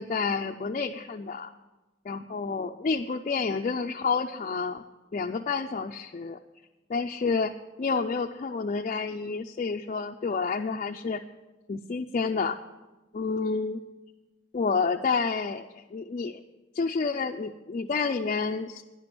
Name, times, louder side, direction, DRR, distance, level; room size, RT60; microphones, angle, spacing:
voice 1, 0.0-1.5 2.1-4.8 5.1-6.4 6.9-7.5 7.8-11.2 11.7-12.6 13.1-13.8 14.5-16.4 16.7-18.8, left 4 dB, 40° left, 3 dB, 0.4 m, -29 dB
10.5 x 6.0 x 8.8 m, 1.1 s
head